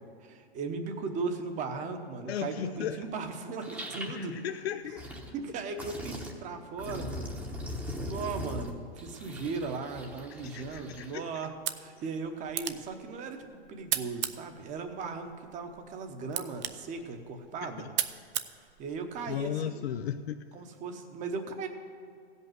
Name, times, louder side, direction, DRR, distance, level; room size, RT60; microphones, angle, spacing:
voice 1, 0.2-4.3 5.3-7.3 8.0-13.4 13.7-17.9 18.8-19.8 20.5-21.7, right 4 dB, 25° right, 7 dB, 1.0 m, -37 dB
voice 2, 2.3-3.1 4.0-5.1 10.3-11.5 12.0-12.1 17.6-17.9 19.3-20.4, left 9 dB, 80° left, 8 dB, 0.6 m, -36 dB
sound 1, 3.0-3.1 3.6-4.3 4.8-5.3 5.8-6.3 6.8-11.2, equal, 5° right, 1.0 m, -40 dB
sound 2, 11.5-19.5, right 12 dB, 45° right, 0.6 m, -38 dB
15.5 x 5.5 x 7.7 m, 2.3 s
hypercardioid pair, 135°, 31 cm